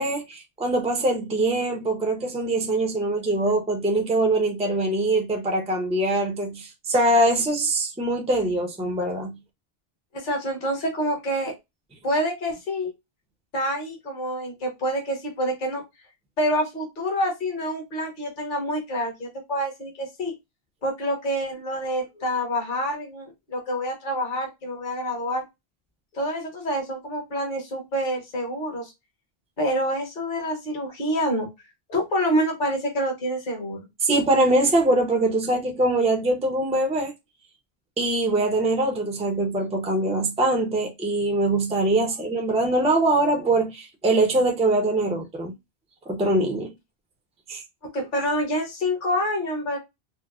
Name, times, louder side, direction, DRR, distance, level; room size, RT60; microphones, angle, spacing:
voice 1, 0.0-9.4 34.0-37.1 38.0-45.5 46.1-46.7 47.5-47.6, right 2 dB, 10° right, 0.5 m, -23 dB
voice 2, 10.1-11.5 12.0-12.9 13.5-15.8 16.4-20.3 20.8-25.4 26.1-28.9 29.6-31.5 31.9-33.8 47.9-49.8, equal, 50° left, 1.3 m, -27 dB
4.4 x 2.1 x 2.3 m
omnidirectional pair, 1.1 m